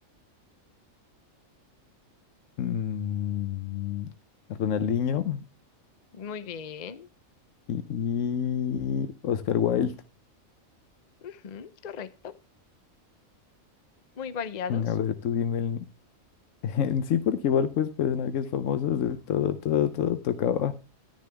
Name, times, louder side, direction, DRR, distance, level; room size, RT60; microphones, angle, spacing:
voice 1, 2.6-4.1 4.5-5.4 7.7-10.0 14.7-15.9 16.6-20.7, left 8 dB, 75° left, 1.0 m, -27 dB
voice 2, 6.1-7.1 11.2-12.4 14.2-14.9, left 7 dB, 40° left, 0.6 m, -37 dB
11.5 x 10.5 x 3.4 m
omnidirectional pair, 1.4 m